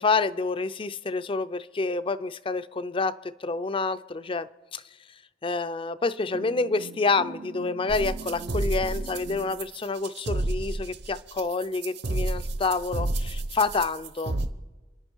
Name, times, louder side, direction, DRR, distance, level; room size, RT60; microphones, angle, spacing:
voice 1, 0.0-4.8 5.4-14.4, left 3 dB, 30° left, 0.4 m, -28 dB
sound 1, 6.3-9.6, right 4 dB, 40° right, 0.4 m, -42 dB
sound 2, 7.9-14.5, right 2 dB, 65° right, 0.9 m, -31 dB
29.5 x 10.5 x 4.5 m
head